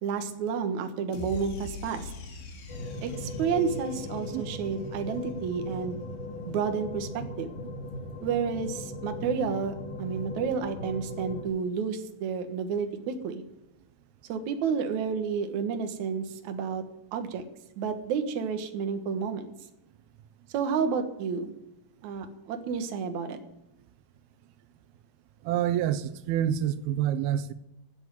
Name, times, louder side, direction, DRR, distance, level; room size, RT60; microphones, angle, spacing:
voice 1, 0.0-2.1 3.0-6.0 6.5-7.5 8.2-13.4 14.3-16.8 17.1-17.4 17.8-19.5 20.5-21.6 22.0-23.4, right 6 dB, 60° right, 2.4 m, -30 dB
sound 1, 1.1-5.5, left 3 dB, 80° left, 4.1 m, -43 dB
sound 2, 2.7-11.5, left 1 dB, 55° left, 4.0 m, -38 dB
voice 2, 25.5-27.5, right 10 dB, 90° right, 2.6 m, -27 dB
13.0 x 8.3 x 9.4 m
omnidirectional pair, 4.4 m